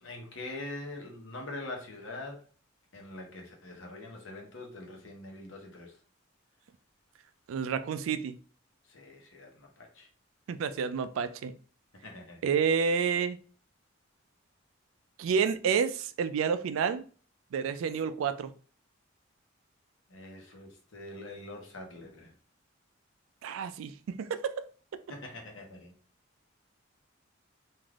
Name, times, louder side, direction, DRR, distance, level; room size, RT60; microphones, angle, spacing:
voice 1, 0.0-2.4 2.9-6.0 8.9-10.1 12.0-12.4 20.1-22.3 25.1-25.9, left 2 dB, 80° left, 0.9 m, -44 dB
voice 2, 7.5-8.4 10.5-11.5 12.4-13.4 15.2-17.0 17.5-18.5 23.4-24.6, right 6 dB, 90° right, 0.3 m, -29 dB
3.3 x 2.5 x 2.3 m
head